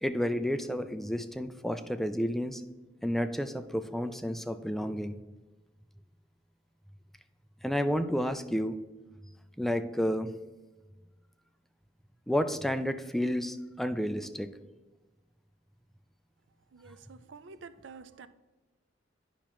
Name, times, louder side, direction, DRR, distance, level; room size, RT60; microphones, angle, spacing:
voice 1, 0.0-2.6 3.0-5.2 7.6-8.8 9.6-10.3 12.3-14.5, equal, ahead, 9 dB, 0.3 m, -31 dB
voice 2, 16.7-18.3, right 5 dB, 80° right, 13 dB, 0.5 m, -49 dB
10.0 x 5.8 x 3.0 m, 1.2 s
head